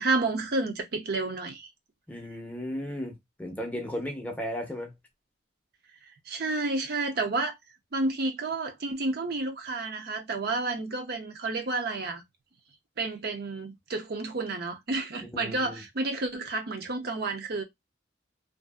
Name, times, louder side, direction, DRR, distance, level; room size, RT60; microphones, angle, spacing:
voice 1, 0.0-1.7 6.3-7.5 7.9-12.2 13.0-17.6, right 3 dB, 55° right, 0.6 m, -30 dB
voice 2, 2.1-4.9 15.3-15.8, equal, 10° left, 0.6 m, -35 dB
2.6 x 2.4 x 2.2 m
head